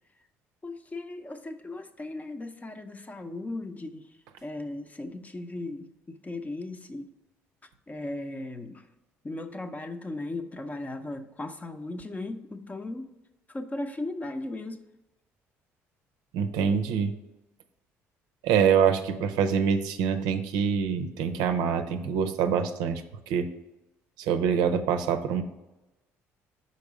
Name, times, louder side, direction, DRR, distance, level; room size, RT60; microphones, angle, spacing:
voice 1, 0.6-4.1 4.4-7.1 7.9-8.9 9.2-13.1 13.5-14.8, left 2 dB, 25° left, 8 dB, 0.7 m, -37 dB
voice 2, 16.3-17.1 18.4-23.0 23.3-23.5 24.2-25.4, right 7 dB, 75° right, 7 dB, 0.5 m, -25 dB
5.3 x 4.2 x 4.8 m, 0.99 s
hypercardioid pair, 60°, 7 cm